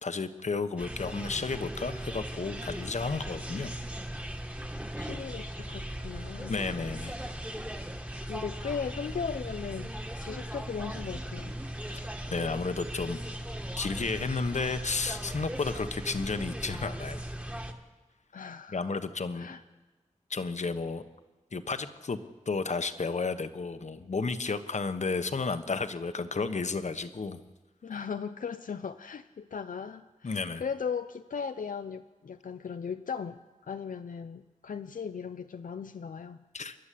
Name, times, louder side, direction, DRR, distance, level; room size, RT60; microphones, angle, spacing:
voice 1, 0.0-3.7 6.5-7.1 11.9-12.0 12.3-13.2 13.8-17.2 18.7-19.5 20.3-21.0 21.5-22.2 22.5-27.4 30.2-30.6 36.5-36.7, left 4 dB, 60° left, 10 dB, 1.2 m, -32 dB
sound 1, 0.8-17.7, right 1 dB, 10° right, 1.9 m, -38 dB
voice 2, 5.0-6.6 8.2-11.6 18.3-18.9 19.3-19.6 27.8-36.4, left 6 dB, 85° left, 9 dB, 0.6 m, -37 dB
29.0 x 11.5 x 8.5 m, 1.2 s
wide cardioid pair, 80°, 13 cm